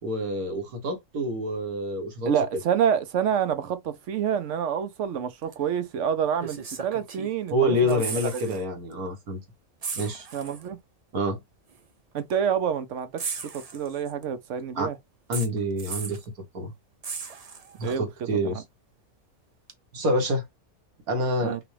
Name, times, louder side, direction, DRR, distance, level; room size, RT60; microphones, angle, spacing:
voice 1, 0.0-2.3 7.5-9.4 9.9-10.3 11.1-11.4 14.8-14.9 15.3-16.2 16.5-16.7 17.8-18.6 19.9-20.4 21.1-21.5, equal, 85° right, 1.9 m, -27 dB
voice 2, 2.2-8.0 8.3-8.6 10.3-10.8 12.1-15.0 17.8-18.1 18.4-18.6 21.4-21.6, right 8 dB, 65° right, 1.0 m, -28 dB
sound 1, 5.5-5.7 6.4-7.5 7.8-8.6 8.9-9.1 9.8-10.7 11.7-11.8 13.2-14.2 15.3-16.3 17.0-17.9 19.7-19.8, right 5 dB, 40° right, 0.5 m, -36 dB
6.0 x 2.4 x 3.3 m
omnidirectional pair, 1.5 m